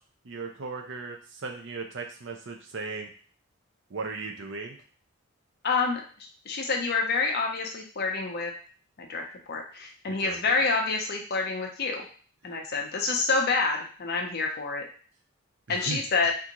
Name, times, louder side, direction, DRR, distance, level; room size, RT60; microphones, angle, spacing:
voice 1, 0.2-3.1 3.9-4.8 10.1-10.4 15.7-16.0, right 4 dB, 55° right, 3 dB, 0.6 m, -37 dB
voice 2, 5.6-6.0 6.5-8.5 9.0-9.2 9.5-12.1 12.4-14.8 15.7-16.3, left 4 dB, 45° left, 2 dB, 0.6 m, -27 dB
3.6 x 2.6 x 2.9 m, 0.41 s
head